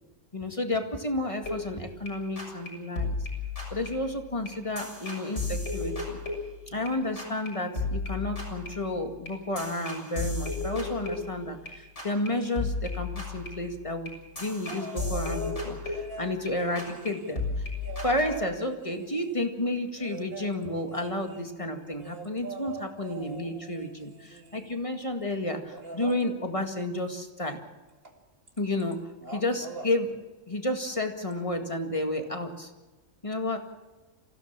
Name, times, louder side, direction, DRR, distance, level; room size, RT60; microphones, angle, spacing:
voice 1, 0.3-3.1 3.7-6.2 6.7-17.4 18.0-27.6 28.6-29.0 29.3-30.1 30.5-32.7 33.2-33.6, left 1 dB, 25° left, 4 dB, 2.1 m, -31 dB
sound 1, 1.4-2.1 2.4-2.7 3.0-6.9 7.2-7.5 7.8-11.7 12.0-12.3 12.6-16.5 16.8-17.1 17.4-18.3, left 3 dB, 60° left, 7.3 m, -34 dB
sound 2, 14.7-15.6 15.9-19.5 20.0-24.8 25.7-26.2 28.0-28.2 28.5-28.9 29.2-29.9 31.3-31.4, right 3 dB, 45° right, 2.4 m, -43 dB
26.5 x 16.0 x 7.4 m, 1.2 s
omnidirectional pair, 1.4 m